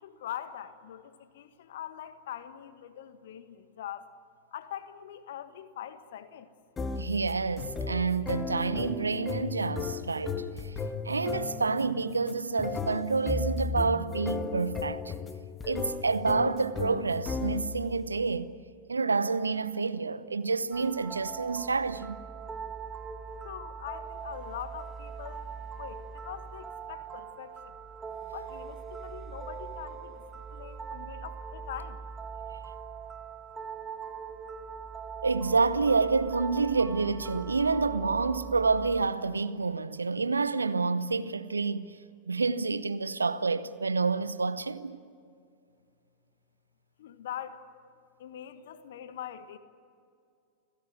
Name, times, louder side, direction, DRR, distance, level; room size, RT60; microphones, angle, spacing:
voice 1, 0.0-4.1 4.5-6.5 23.4-25.5 25.8-27.8 28.3-32.0 47.0-47.6 48.2-49.6, left 10 dB, 55° left, 1.7 m, -43 dB
sound 1, 6.8-17.9, left 4 dB, 20° left, 1.7 m, -35 dB
voice 2, 7.0-10.7 11.0-15.1 15.7-18.5 18.9-22.2 35.2-42.0 42.3-45.0, right 4 dB, 75° right, 0.9 m, -28 dB
sound 2, 20.7-39.0, right 6 dB, 15° right, 2.1 m, -41 dB
30.0 x 16.5 x 9.2 m
figure-of-eight pair, 90°, 0 cm